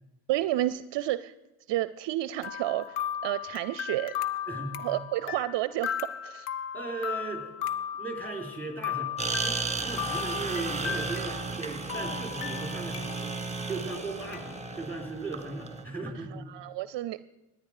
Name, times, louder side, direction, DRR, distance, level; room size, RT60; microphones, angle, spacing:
voice 1, 0.3-1.3 1.7-4.1 4.8-5.9 6.2-6.5 16.3-17.2, right 14 dB, 60° right, 16 dB, 0.5 m, -30 dB
sound 1, 2.4-11.6 11.9-13.3 13.7-13.8 14.3-14.4, left 9 dB, 85° left, 0.8 m, -36 dB
voice 2, 4.5-4.8 6.7-7.5 8.0-13.4 13.7-16.5, right 3 dB, 5° left, 2 dB, 4.0 m, -37 dB
sound 2, 9.2-15.8, right 4 dB, 15° right, 1.5 m, -34 dB
17.5 x 10.0 x 4.9 m, 1.0 s
supercardioid pair, 70°, 50 cm